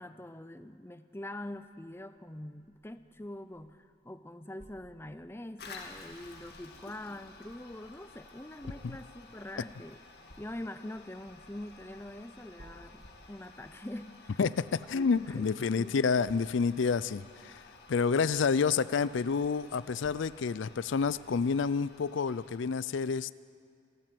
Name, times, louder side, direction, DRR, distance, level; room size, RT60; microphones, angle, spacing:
voice 1, 0.0-10.0 10.4-14.4 14.9-16.0, left 1 dB, 10° left, 11 dB, 0.6 m, -44 dB
sound 1, 2.2-14.1, equal, 40° right, 1.8 m, -59 dB
Toilet flush, 5.6-22.6, left 3 dB, 55° left, 2.2 m, -53 dB
voice 2, 14.4-17.6 17.9-23.3, left 5 dB, 80° left, 17 dB, 0.4 m, -29 dB
28.0 x 12.5 x 7.7 m, 2.4 s
head